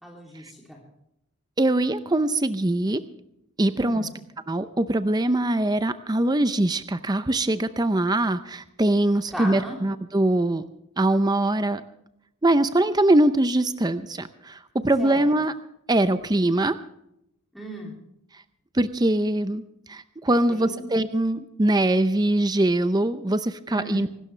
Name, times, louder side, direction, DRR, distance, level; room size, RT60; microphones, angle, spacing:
voice 1, 0.0-0.8 3.7-4.1 9.3-9.8 15.0-15.3 17.5-17.9 20.5-20.9 23.7-24.1, right 1 dB, ahead, -1 dB, 2.9 m, -36 dB
voice 2, 1.6-3.0 3.6-4.1 4.5-10.6 11.0-11.8 12.4-15.5 15.9-16.8 18.7-19.6 19.9-24.1, right 1 dB, 20° right, 11 dB, 0.6 m, -22 dB
25.0 x 12.5 x 3.3 m, 0.81 s
head